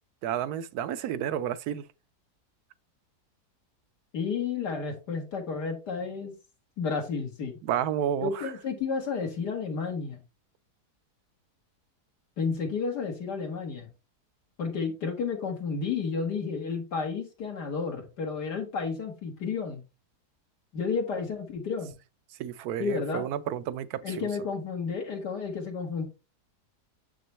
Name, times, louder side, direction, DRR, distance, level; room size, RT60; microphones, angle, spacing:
voice 1, 0.2-1.8 7.6-8.5 22.4-24.3, right 10 dB, 75° right, 1.1 m, -31 dB
voice 2, 4.1-6.3 6.8-7.6 8.2-10.2 12.4-13.9 14.6-19.8 20.7-21.9 22.8-23.3 24.0-26.0, left 5 dB, 80° left, 2.1 m, -31 dB
7.0 x 6.1 x 3.1 m
omnidirectional pair, 1.7 m